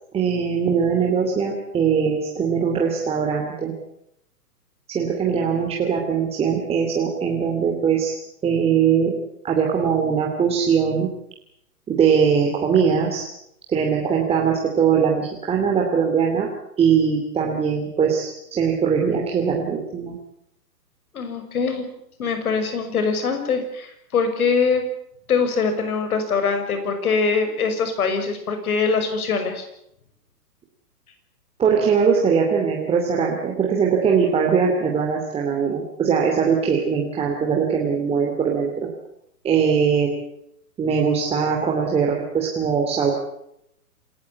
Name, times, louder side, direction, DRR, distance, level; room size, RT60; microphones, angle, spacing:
voice 1, 0.1-3.7 4.9-8.1 8.4-9.2 9.4-11.1 11.9-13.3 13.7-16.5 16.8-20.2 31.6-38.9 39.4-40.1 40.8-43.1, right 6 dB, 10° right, 0 dB, 2.7 m, -21 dB
voice 2, 21.1-21.9 22.2-24.8 25.3-29.7, left 5 dB, 60° left, 7 dB, 6.3 m, -23 dB
27.5 x 14.0 x 9.5 m, 0.78 s
hypercardioid pair, 140°, 48 cm